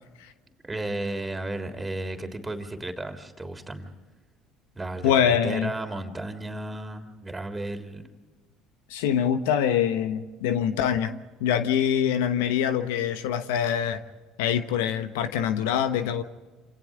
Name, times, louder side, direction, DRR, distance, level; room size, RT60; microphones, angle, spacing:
voice 1, 0.6-3.9 4.7-8.1, right 2 dB, 15° right, 6 dB, 3.4 m, -34 dB
voice 2, 5.0-5.7 8.9-11.1 11.4-14.0 14.4-16.2, left 9 dB, 75° left, 10 dB, 1.1 m, -24 dB
28.0 x 27.0 x 3.7 m, 1.3 s
hypercardioid pair, 65°, 0 cm